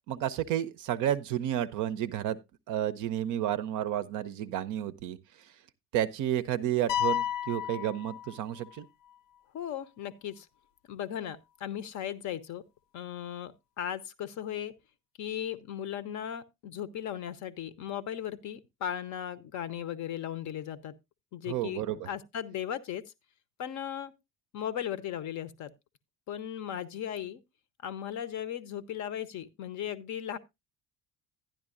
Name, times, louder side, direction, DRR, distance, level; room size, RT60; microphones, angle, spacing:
voice 1, 0.1-2.4 2.7-5.2 5.9-8.9 21.5-22.1, right 11 dB, 40° right, 0.6 m, -31 dB
sound 1, 6.9-8.8, left 10 dB, 80° left, 0.8 m, -32 dB
voice 2, 9.5-10.5 10.9-12.6 12.9-14.7 15.2-20.9 21.3-23.0 23.6-24.1 24.5-25.7 26.3-27.4 27.8-30.4, left 10 dB, 35° left, 0.7 m, -37 dB
12.0 x 10.0 x 2.4 m
figure-of-eight pair, 60°, 49 cm